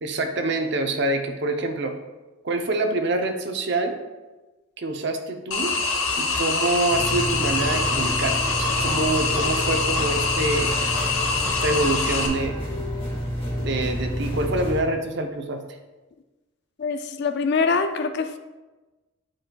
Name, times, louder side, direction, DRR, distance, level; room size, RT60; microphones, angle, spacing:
voice 1, 0.0-1.9 2.4-4.0 4.8-5.8 6.2-10.8 11.5-12.7 13.6-15.6, right 2 dB, 55° right, 5 dB, 0.6 m, -26 dB
sound 1, 5.5-12.3, left 3 dB, 85° left, 0.9 m, -24 dB
sound 2, 6.9-14.8, equal, 25° left, 1.5 m, -29 dB
voice 2, 16.8-18.4, left 4 dB, 50° left, 9 dB, 0.4 m, -24 dB
8.5 x 5.2 x 2.2 m, 1.2 s
head